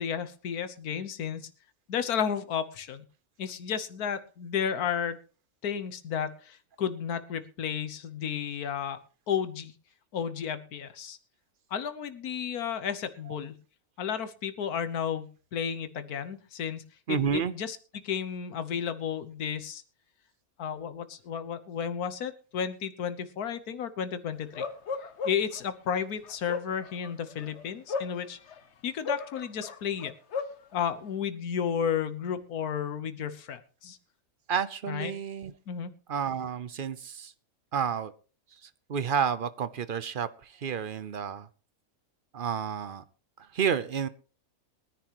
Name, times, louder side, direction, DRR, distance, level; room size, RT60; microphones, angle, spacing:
voice 1, 0.0-1.5 1.9-3.0 3.4-5.2 5.6-9.0 9.3-9.7 10.1-11.2 11.7-13.5 14.0-19.8 20.6-24.6 25.2-28.4 28.8-30.1 30.7-34.0 34.9-35.1 35.7-35.9, left 8 dB, 80° left, 11 dB, 1.6 m, -32 dB
voice 2, 17.1-17.6 34.5-35.5 36.1-37.3 37.7-38.1 38.6-41.5 42.3-43.0 43.4-44.1, right 7 dB, 50° right, 15 dB, 0.6 m, -30 dB
Bark, 24.5-25.6 26.2-28.6 29.0-30.6, left 5 dB, 50° left, 1.2 m, -35 dB
22.0 x 10.5 x 3.0 m, 0.36 s
omnidirectional pair, 1.6 m